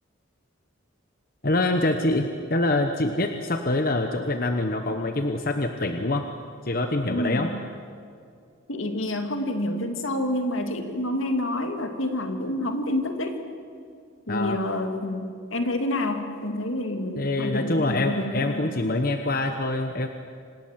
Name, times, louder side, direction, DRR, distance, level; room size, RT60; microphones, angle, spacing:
voice 1, 1.4-6.2 6.6-7.5 14.3-14.6 17.2-20.1, left 2 dB, 45° left, 6 dB, 1.1 m, -25 dB
voice 2, 7.1-7.6 8.7-13.4 14.3-18.6, left 1 dB, 70° left, 5 dB, 2.3 m, -28 dB
26.5 x 19.5 x 7.5 m, 2.3 s
head